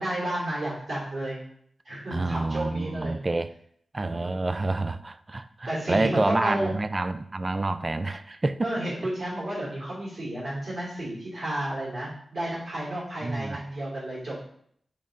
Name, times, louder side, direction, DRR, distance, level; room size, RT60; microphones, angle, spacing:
voice 1, 0.0-1.4 1.8-3.1 4.0-4.3 5.6-6.7 8.6-14.4, right 1 dB, 50° right, -7 dB, 2.9 m, -32 dB
voice 2, 2.1-3.5 3.9-8.7 13.2-13.6, right 2 dB, 25° right, 12 dB, 0.4 m, -28 dB
8.4 x 3.6 x 3.7 m, 0.65 s
wide cardioid pair, 140°, 0 cm